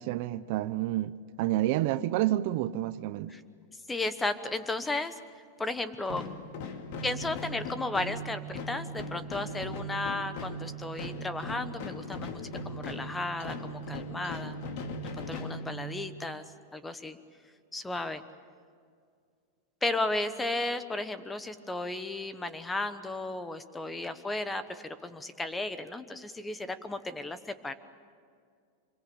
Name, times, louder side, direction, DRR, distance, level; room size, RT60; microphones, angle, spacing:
voice 1, 0.0-3.3, right 14 dB, 50° right, 0.7 m, -29 dB
voice 2, 3.9-5.2 5.6-6.2 7.0-14.6 15.2-16.4 16.7-17.2 17.7-18.2 19.8-27.7, left 2 dB, 10° left, 1.0 m, -34 dB
sound 1, 6.1-16.2, equal, 55° left, 2.3 m, -39 dB
25.5 x 22.5 x 8.6 m
supercardioid pair, 155°, 0 cm